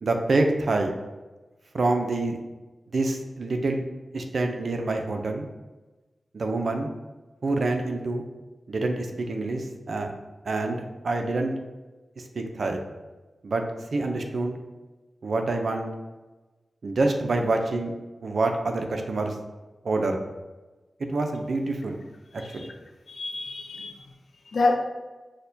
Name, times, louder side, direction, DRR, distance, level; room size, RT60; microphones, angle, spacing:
voice 1, 0.0-0.9 1.7-2.4 2.9-3.8 4.1-5.5 6.3-6.9 7.4-8.2 8.7-10.1 10.5-11.5 12.4-12.8 13.4-13.6 13.9-14.6 15.2-15.9 16.8-17.9 18.2-19.3 19.8-20.2 21.1-22.0 22.5-22.7, right 2 dB, 70° right, 4 dB, 0.5 m, -26 dB
voice 2, 22.4-22.7 23.1-24.0 24.5-24.7, left 3 dB, 80° left, 2 dB, 0.5 m, -27 dB
6.3 x 2.2 x 2.6 m, 1.2 s
cardioid pair, 60°, 0 cm